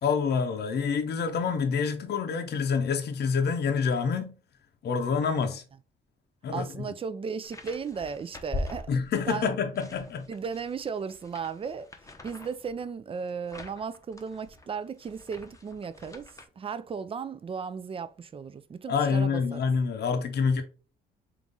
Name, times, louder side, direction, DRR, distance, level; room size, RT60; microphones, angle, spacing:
voice 1, 0.0-4.4 4.8-5.6 6.4-6.7 8.9-10.3 18.9-20.6, left 5 dB, 55° left, 0.6 m, -27 dB
voice 2, 6.5-8.9 9.3-9.6 10.3-11.9 12.2-19.7, right 6 dB, 30° right, 0.4 m, -35 dB
sound 1, 7.4-9.4 9.8-16.5, left 2 dB, 15° left, 0.7 m, -42 dB
3.8 x 3.0 x 3.6 m
cardioid pair, 90°, 20 cm